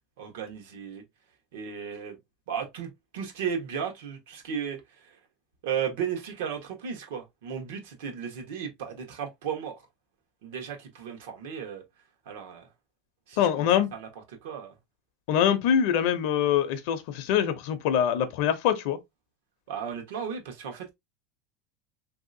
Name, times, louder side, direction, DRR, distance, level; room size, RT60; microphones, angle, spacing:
voice 1, 0.2-1.0 1.5-2.2 2.5-4.8 5.6-9.7 10.4-11.8 12.3-12.6 13.3-13.5 13.9-14.1 14.4-14.7 19.7-20.9, right 7 dB, 85° right, 1.1 m, -34 dB
voice 2, 13.4-13.9 15.3-19.0, left 9 dB, 55° left, 0.5 m, -24 dB
3.2 x 2.7 x 2.6 m
supercardioid pair, 180°, 0 cm